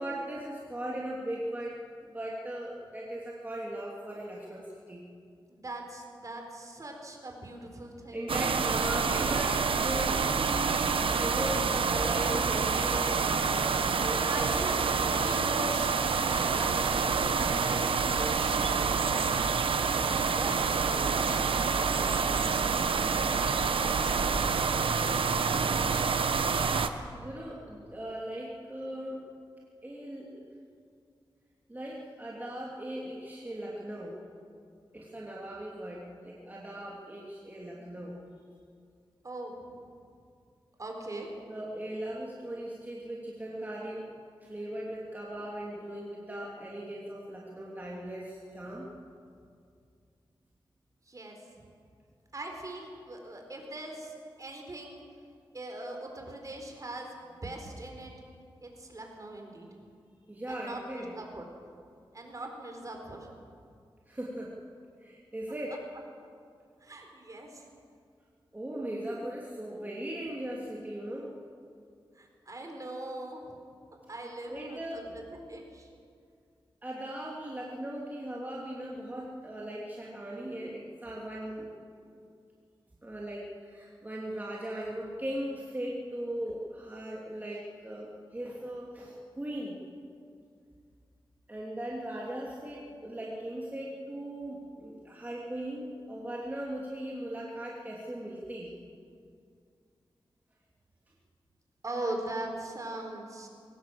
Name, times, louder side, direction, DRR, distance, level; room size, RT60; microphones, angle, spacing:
voice 1, 0.0-1.8 2.1-4.6 4.9-5.0 8.1-13.6 14.0-15.3 26.8-29.2 29.8-30.4 31.7-34.2 34.9-38.1 41.1-44.0 44.4-48.9 60.3-61.1 64.1-64.5 65.0-65.7 68.5-71.3 74.5-75.1 76.8-81.7 82.1-82.2 83.0-89.8 91.5-98.7, right 1 dB, 20° right, -4 dB, 3.0 m, -38 dB
voice 2, 5.5-8.5 8.8-9.6 11.3-11.8 14.3-19.1 20.1-22.7 23.8-24.7 39.2-39.9 40.8-41.3 51.1-51.7 52.3-55.0 55.5-58.1 58.6-59.7 60.5-61.5 62.1-63.3 66.8-67.6 72.1-73.6 74.1-75.9 101.8-103.5, right 1 dB, 40° right, 2 dB, 4.4 m, -41 dB
sound 1, 8.3-26.9, right 5 dB, 80° right, 1.1 m, -27 dB
22.5 x 18.5 x 7.8 m, 2.3 s
wide cardioid pair, 105°, 9 cm